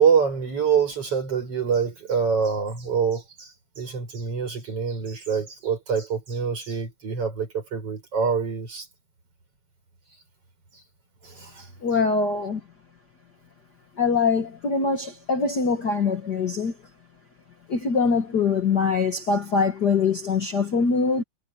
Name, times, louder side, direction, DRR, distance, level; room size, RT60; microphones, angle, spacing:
voice 1, 0.0-3.5 3.8-8.9 11.2-11.7, right 6 dB, 50° right, 6.6 m, -25 dB
voice 2, 11.8-12.6 14.0-16.7 17.7-21.2, left 5 dB, 45° left, 1.6 m, -23 dB
omnidirectional pair, 3.3 m